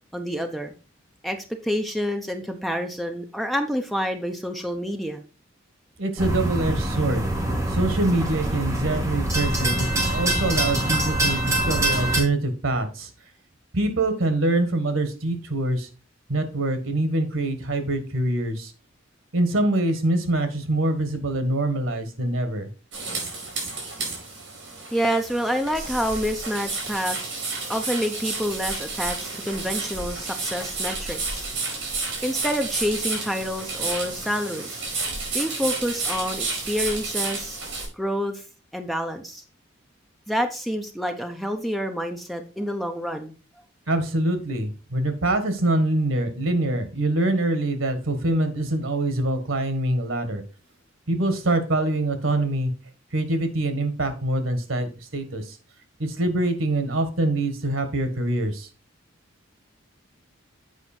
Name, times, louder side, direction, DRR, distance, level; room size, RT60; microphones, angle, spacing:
voice 1, 0.1-0.7 1.2-5.2 24.9-27.2 27.7-31.5 32.2-34.8 35.3-37.6 38.0-38.4 38.7-39.4 40.3-43.3, equal, ahead, 5 dB, 0.7 m, -28 dB
voice 2, 6.0-7.3 7.7-13.1 13.7-15.9 16.3-18.7 19.3-22.7 43.9-50.4 51.1-52.7 53.1-55.6 56.0-58.7, right 2 dB, 85° right, 9 dB, 1.5 m, -24 dB
sound 1, 6.2-12.2, right 1 dB, 15° right, 2.1 m, -24 dB
sound 2, 22.9-37.9, right 3 dB, 70° right, 4.1 m, -31 dB
8.2 x 4.9 x 4.3 m, 0.33 s
head